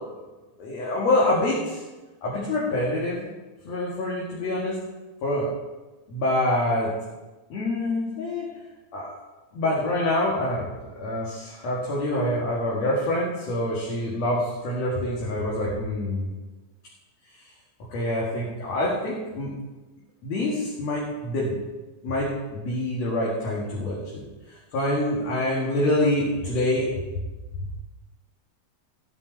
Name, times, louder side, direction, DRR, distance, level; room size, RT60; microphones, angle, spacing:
voice 1, 0.6-1.8 2.2-3.2 3.6-4.8 5.2-5.5 6.1-6.9 7.5-8.5 8.9-9.2 9.5-16.3 17.9-19.6 20.2-21.6 22.0-26.9, left 1 dB, 65° left, -5 dB, 2.9 m, -26 dB
15.0 x 9.4 x 4.5 m, 1.2 s
omnidirectional pair, 3.4 m